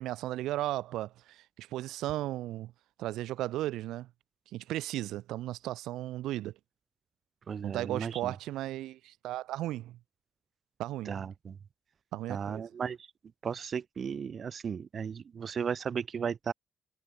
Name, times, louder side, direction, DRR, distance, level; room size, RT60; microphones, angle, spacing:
voice 1, 0.0-2.7 3.0-4.1 4.5-6.5 7.6-10.0 10.8-11.2 12.1-12.6, right 15 dB, 90° right, 5.0 m, -35 dB
voice 2, 7.5-8.3 11.1-11.6 12.3-13.1 13.4-16.5, right 7 dB, 50° right, 3.5 m, -35 dB
cardioid pair, 90°, 0 cm